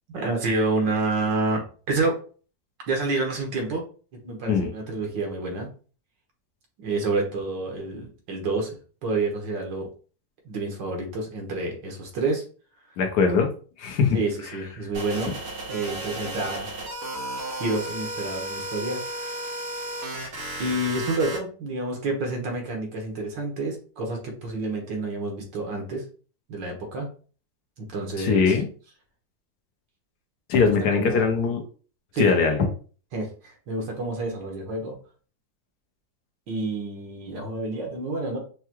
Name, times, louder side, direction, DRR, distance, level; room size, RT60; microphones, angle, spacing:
voice 1, 0.1-1.6 1.9-2.1 2.9-3.8 4.2-5.7 6.8-8.8 9.0-9.9 10.5-12.4 14.1-15.3 15.7-16.7 17.6-19.4 20.6-26.0 26.5-27.1 27.8-28.6 30.6-31.3 32.1-32.3 33.1-35.0 36.5-38.4, right 2 dB, 80° right, 1 dB, 1.9 m, -28 dB
voice 2, 13.0-13.5 13.8-14.2 28.2-28.7 30.5-31.6 32.2-32.6, left 5 dB, 70° left, 4 dB, 1.3 m, -21 dB
sound 1, 14.9-21.4, right 1 dB, 50° right, 1.5 m, -34 dB
5.7 x 2.3 x 3.0 m, 0.39 s
omnidirectional pair, 1.9 m